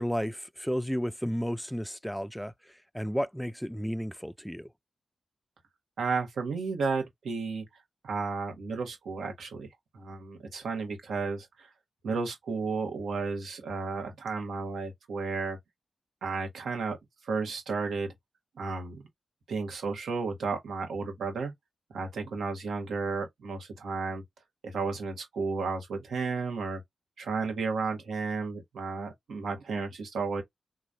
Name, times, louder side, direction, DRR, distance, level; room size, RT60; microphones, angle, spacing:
voice 1, 0.0-2.5 2.9-4.7, equal, ahead, 0.3 m, -32 dB
voice 2, 6.0-7.6 8.0-9.7 9.9-11.7 12.0-15.6 16.2-17.0 17.2-18.1 18.6-19.0 19.5-21.5 21.9-24.2 24.6-26.8 27.2-30.4, right 4 dB, 90° right, 1.3 m, -33 dB
3.8 x 3.1 x 2.7 m
cardioid pair, 45°, 0 cm